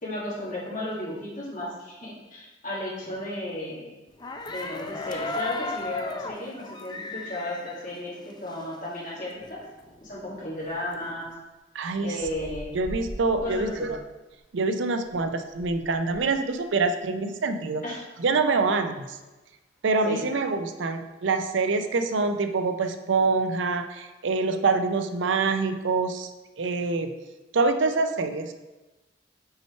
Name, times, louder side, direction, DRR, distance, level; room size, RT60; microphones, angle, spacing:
voice 1, 0.0-3.9 4.5-9.6 10.0-11.3 12.0-12.7 13.4-13.9 17.8-18.0 20.0-20.3, left 1 dB, 45° left, -7 dB, 2.0 m, -34 dB
sound 1, 4.2-8.8 9.1-9.2 9.4-11.3, left 3 dB, 25° left, 0.4 m, -35 dB
voice 2, 11.7-12.2 12.7-14.0 14.5-17.8 18.2-19.2 19.8-26.3 26.6-27.1 27.5-28.5, right 3 dB, 85° right, 8 dB, 0.5 m, -25 dB
sound 2, 12.2-14.4 14.9-16.9 17.1-17.2, equal, ahead, 0.8 m, -43 dB
5.6 x 4.5 x 4.4 m, 1.1 s
head